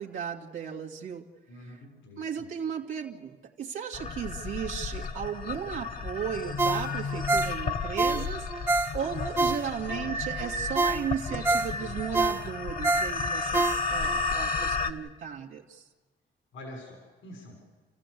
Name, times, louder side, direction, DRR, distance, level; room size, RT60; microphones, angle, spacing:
voice 1, 0.0-1.3 1.7-1.8 2.2-15.8, right 8 dB, 85° right, -2 dB, 2.2 m, -35 dB
voice 2, 1.5-2.5 16.5-17.7, left 1 dB, 80° left, 1 dB, 6.4 m, -46 dB
sound 1, 3.9-14.9, left 4 dB, 45° left, 1.4 m, -33 dB
Ringtone, 6.6-10.0 10.4-10.5 10.8-14.2 14.6-14.7, right 3 dB, 15° right, 1.0 m, -28 dB
29.5 x 15.0 x 8.4 m, 1.3 s
cardioid pair, 90°, 20 cm